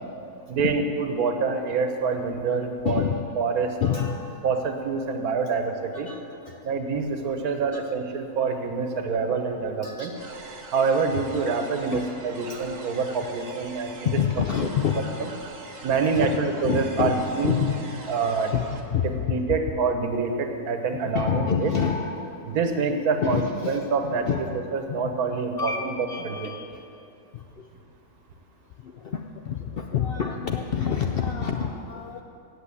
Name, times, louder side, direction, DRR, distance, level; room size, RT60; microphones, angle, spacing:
voice 1, 0.5-3.0 3.4-3.7 4.4-6.1 6.6-10.1 10.7-14.1 15.8-17.5 18.1-18.5 19.3-21.7 22.5-23.4 23.7-24.3 24.7-25.9 26.2-26.5, right 5 dB, 85° right, 5 dB, 1.4 m, -26 dB
voice 2, 2.8-4.5 5.9-6.6 7.7-7.8 9.8-10.3 11.9-12.1 12.5-13.3 14.0-15.5 16.1-17.8 18.5-19.4 20.9-22.4 23.2-24.5 24.9-25.1 25.6-25.8 26.1-26.8 28.8-32.2, left 7 dB, 65° left, 3 dB, 0.5 m, -28 dB
sound 1, 10.1-18.8, right 3 dB, 50° right, 1.1 m, -42 dB
8.3 x 7.9 x 8.3 m, 2.6 s
omnidirectional pair, 1.5 m